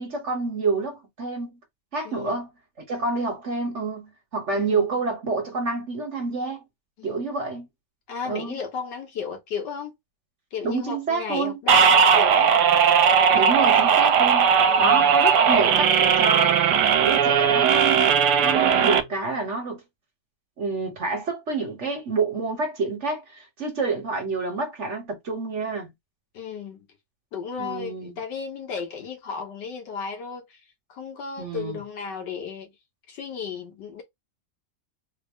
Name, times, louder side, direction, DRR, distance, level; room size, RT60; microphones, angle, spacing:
voice 1, 0.0-1.6 1.9-2.5 2.9-6.6 7.0-7.7 8.3-8.6 10.6-11.6 13.3-14.5 14.8-16.6 17.0-18.1 18.4-19.8 20.6-25.9 27.6-28.1 31.4-31.8, right 3 dB, 50° right, 1.2 m, -28 dB
voice 2, 2.0-2.4 4.5-4.9 7.0-7.2 8.1-10.0 10.5-12.5 14.7-15.2 26.3-26.9 27.3-30.6 30.9-32.7 33.1-34.0, left 6 dB, 80° left, 1.7 m, -34 dB
sound 1, 11.7-19.0, right 7 dB, 75° right, 1.2 m, -18 dB
4.0 x 2.1 x 3.5 m
omnidirectional pair, 1.9 m